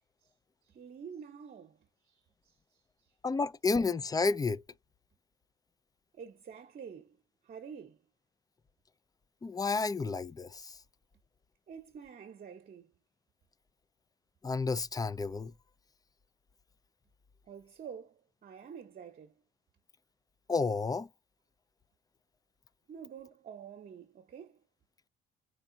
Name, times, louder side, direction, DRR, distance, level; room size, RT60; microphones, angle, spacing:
voice 1, 0.6-3.2 6.1-8.0 11.7-12.9 17.4-19.4 22.9-24.6, right 7 dB, 50° right, 0.9 m, -49 dB
voice 2, 3.2-4.6 9.4-10.8 14.4-15.5 20.5-21.1, left 4 dB, 20° left, 0.4 m, -31 dB
4.6 x 3.5 x 2.7 m
cardioid pair, 90°, 20 cm